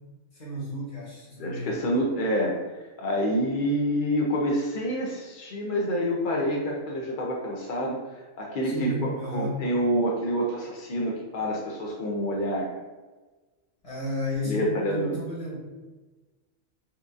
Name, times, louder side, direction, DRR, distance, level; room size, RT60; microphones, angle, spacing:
voice 1, 0.3-1.9 8.6-9.6 13.8-15.6, left 1 dB, 25° left, -7 dB, 1.2 m, -33 dB
voice 2, 1.4-8.0 8.4-12.7 14.4-15.1, equal, 75° left, -1 dB, 0.4 m, -27 dB
4.4 x 2.4 x 2.4 m, 1.3 s
omnidirectional pair, 1.4 m